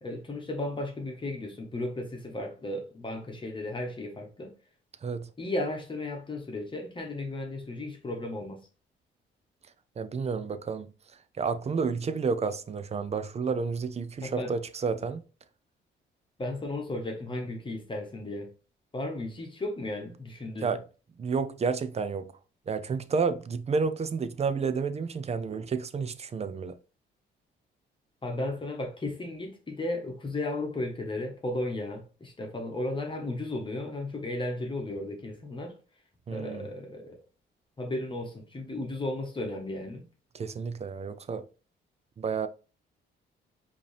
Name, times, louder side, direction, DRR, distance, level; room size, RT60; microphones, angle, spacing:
voice 1, 0.0-4.5 5.4-8.6 14.2-14.5 16.4-18.5 18.9-20.7 28.2-35.7 36.3-37.2 37.8-40.0, left 2 dB, 25° left, 1.2 m, -34 dB
voice 2, 10.0-10.9 11.4-15.2 20.6-20.8 21.2-22.3 22.7-26.8 36.3-36.7 40.3-41.5 42.2-42.5, right 5 dB, 35° right, 0.5 m, -30 dB
5.1 x 2.9 x 3.3 m
cardioid pair, 90°, 20 cm